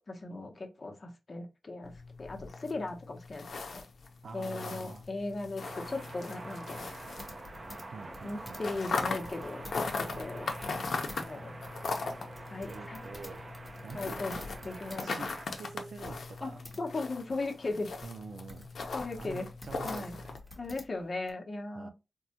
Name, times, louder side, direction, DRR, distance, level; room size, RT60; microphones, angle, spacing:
voice 1, 0.1-3.8 4.3-7.1 8.2-10.5 11.2-11.5 12.5-13.0 13.9-15.1 16.4-17.9 18.9-19.5 19.8-20.2 20.6-21.9, left 2 dB, 40° left, 0.8 m, -38 dB
sound 1, 1.8-7.8 8.1-20.4, left 4 dB, 70° left, 0.5 m, -39 dB
voice 2, 4.2-5.1 7.9-8.7 10.0-10.3 12.7-13.5 13.8-14.5 15.0-16.6 18.0-18.7 19.2-20.4 21.7-21.9, right 5 dB, 70° right, 0.4 m, -46 dB
sound 2, 5.6-15.5, right 2 dB, 40° right, 0.7 m, -46 dB
sound 3, 6.9-11.2 11.5-15.1 15.4-15.5 16.0-16.8 17.4-21.3, left 1 dB, 5° right, 1.0 m, -51 dB
3.6 x 2.1 x 2.8 m
wide cardioid pair, 90°, 0 cm